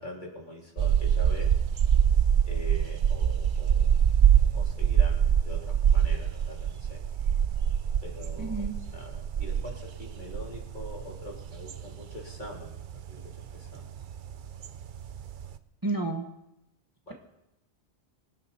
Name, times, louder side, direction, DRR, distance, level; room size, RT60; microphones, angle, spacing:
voice 1, 0.0-1.5 2.5-3.9 4.5-7.0 8.0-13.2 13.5-13.9 17.1-17.2, left 1 dB, 45° left, -3 dB, 3.7 m, -43 dB
sound 1, 0.8-15.6, right 8 dB, 55° right, 0.7 m, -25 dB
voice 2, 8.4-8.7 15.8-16.2, right 2 dB, 20° right, 3 dB, 1.1 m, -30 dB
25.0 x 9.2 x 4.3 m, 0.88 s
omnidirectional pair, 1.1 m